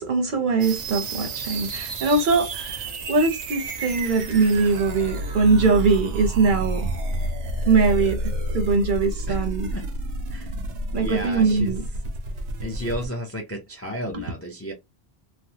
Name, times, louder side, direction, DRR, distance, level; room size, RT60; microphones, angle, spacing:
voice 1, 0.0-6.9 7.7-9.7 10.9-11.8 14.1-14.2, right 4 dB, 55° right, 0.7 m, -22 dB
sound 1, 0.6-13.1, right 1 dB, 90° right, 1.0 m, -30 dB
voice 2, 10.9-11.7 12.6-14.7, equal, 20° left, 0.4 m, -32 dB
3.1 x 2.1 x 2.8 m
omnidirectional pair, 1.1 m